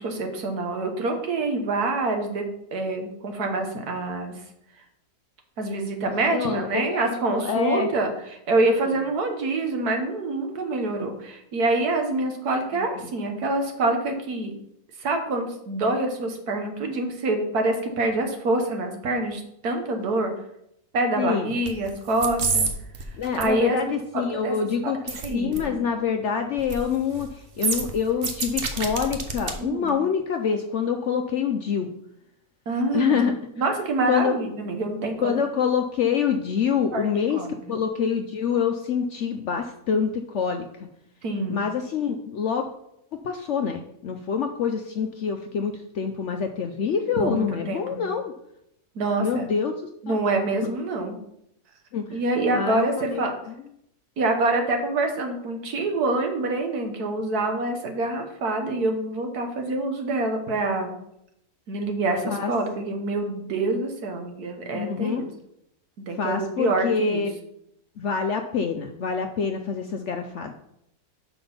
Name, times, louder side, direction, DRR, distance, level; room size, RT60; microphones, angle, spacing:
voice 1, 0.0-4.3 5.6-8.1 8.5-14.5 15.0-20.3 20.9-22.6 23.4-24.5 24.8-24.9 25.2-25.8 29.6-30.0 32.7-33.2 33.6-35.4 36.9-37.1 37.3-37.6 41.2-41.6 47.2-48.1 48.9-49.4 50.0-51.2 52.1-53.3 54.2-60.9 61.7-65.3 66.1-67.2, right 2 dB, 70° right, 4 dB, 1.7 m, -26 dB
voice 2, 6.3-7.9 13.0-13.1 21.2-21.5 23.2-31.9 32.9-33.3 34.1-34.3 35.2-40.7 41.5-42.7 43.1-48.3 49.2-49.7 50.1-50.2 51.9-52.2 52.5-53.3 62.3-62.5 64.7-65.2 66.2-67.3 68.0-70.5, left 6 dB, 65° left, 5 dB, 0.7 m, -26 dB
sound 1, 21.7-21.9 22.1-22.7 22.9-23.4 25.1-25.3 25.5-25.6 26.6-26.8 27.1-27.3 27.6-29.5 29.9-30.0, right 4 dB, 45° right, 1.0 m, -27 dB
6.1 x 5.8 x 5.4 m, 0.77 s
omnidirectional pair, 1.7 m